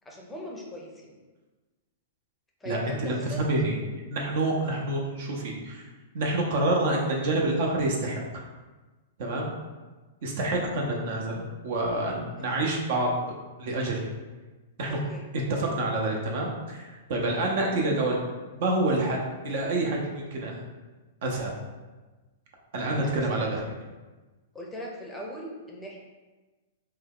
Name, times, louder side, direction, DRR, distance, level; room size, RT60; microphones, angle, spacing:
voice 1, 0.0-1.2 2.6-3.8 14.9-15.2 17.4-17.5 23.0-23.5 24.5-26.0, equal, 10° left, -2 dB, 0.5 m, -40 dB
voice 2, 2.6-3.7 4.1-5.8 6.1-8.2 9.2-9.5 10.2-13.1 13.6-14.1 14.8-15.0 15.5-18.2 18.5-19.2 19.4-20.6 21.2-21.5 22.7-23.6, right 2 dB, 60° right, -1 dB, 0.7 m, -27 dB
2.7 x 2.3 x 3.6 m, 1.2 s
hypercardioid pair, 125°, 0 cm